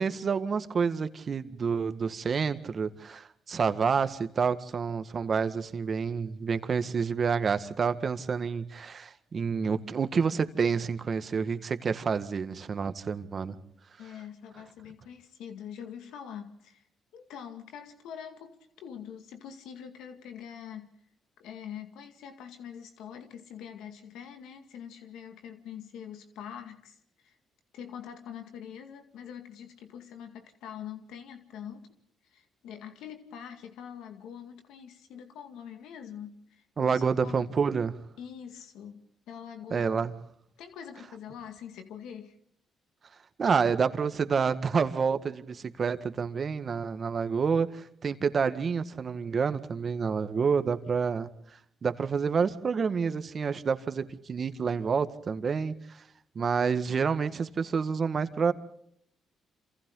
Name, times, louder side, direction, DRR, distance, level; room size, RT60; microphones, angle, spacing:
voice 1, 0.0-13.6 36.8-38.0 39.7-40.1 43.4-51.3 51.8-56.0 56.4-58.5, right 5 dB, 45° right, 1.8 m, -28 dB
voice 2, 14.0-16.8 17.1-21.0 21.4-27.4 27.7-37.5 38.2-40.0 40.6-42.4, left 8 dB, 85° left, 2.1 m, -44 dB
28.5 x 27.5 x 3.9 m
cardioid pair, 90°, 0 cm